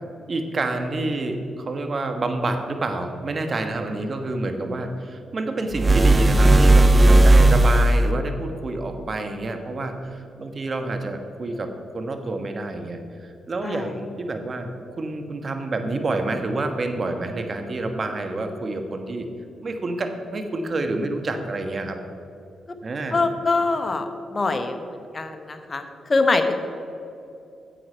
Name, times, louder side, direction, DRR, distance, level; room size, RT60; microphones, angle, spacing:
voice 1, 0.3-19.3 19.6-22.0 22.8-23.2, right 2 dB, 50° right, 6 dB, 1.2 m, -28 dB
sound 1, 5.7-8.1, right 1 dB, 30° right, 0.5 m, -14 dB
voice 2, 23.1-26.7, left 3 dB, 40° left, 8 dB, 1.0 m, -24 dB
10.0 x 7.9 x 4.5 m, 2.7 s
supercardioid pair, 50°, 0 cm